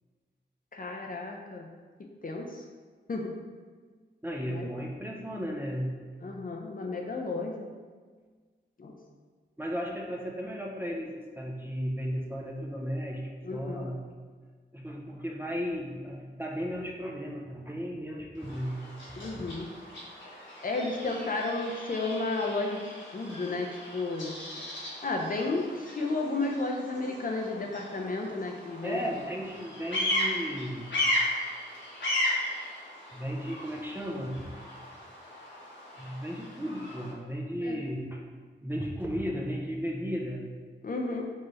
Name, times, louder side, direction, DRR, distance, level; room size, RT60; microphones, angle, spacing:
voice 1, 0.7-1.7 2.2-2.6 3.1-3.3 4.5-4.7 6.2-7.7 8.8-9.0 13.4-13.9 19.2-19.7 20.6-24.3 25.0-29.0 37.6-37.8 40.8-41.2, left 3 dB, 50° left, 0 dB, 0.5 m, -32 dB
voice 2, 4.2-6.0 9.6-14.1 14.7-19.5 28.8-31.0 33.1-34.5 36.0-38.2 38.6-40.5, equal, 10° right, -1 dB, 0.6 m, -35 dB
Bird vocalization bird call bird song, 18.4-37.1, left 1 dB, 80° left, 1.2 m, -36 dB
4.4 x 3.1 x 3.1 m, 1.5 s
wide cardioid pair, 70°, 19 cm